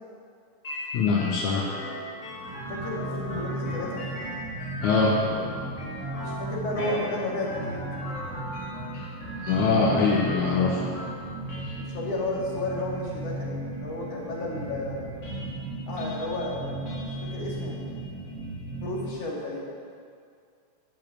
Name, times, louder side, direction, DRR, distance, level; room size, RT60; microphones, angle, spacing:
sound 1, 0.6-19.3, left 1 dB, 35° left, 1.4 m, -40 dB
voice 1, 0.9-1.7 4.8-5.2 8.9-9.1 9.4-10.8 11.6-11.8, left 4 dB, 80° left, -3 dB, 2.4 m, -23 dB
sound 2, 2.2-19.2, right 2 dB, 65° right, 1.7 m, -36 dB
voice 2, 2.7-4.0 6.2-7.8 11.8-15.1 15.9-16.9 17.2-17.8 18.8-19.7, left 2 dB, 60° left, -5 dB, 3.3 m, -32 dB
12.0 x 5.2 x 8.9 m, 2.3 s
omnidirectional pair, 3.3 m